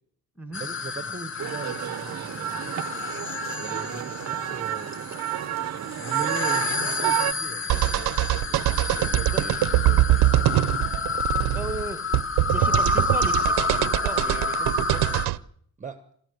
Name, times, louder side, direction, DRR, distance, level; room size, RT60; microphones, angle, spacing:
sound 1, 0.5-15.3, left 3 dB, 30° left, 1.2 m, -30 dB
voice 1, 0.5-2.7 3.6-5.1 6.0-10.6 12.5-12.7 15.8-16.1, right 4 dB, 20° right, 10 dB, 1.1 m, -40 dB
sound 2, 1.4-7.3, right 12 dB, 45° right, 0.8 m, -30 dB
sound 3, 7.7-15.4, right 15 dB, 90° right, 0.8 m, -23 dB
voice 2, 11.2-12.0 12.5-15.0, right 2 dB, 5° right, 11 dB, 1.5 m, -37 dB
27.5 x 13.5 x 7.9 m, 0.65 s
cardioid pair, 140°, 38 cm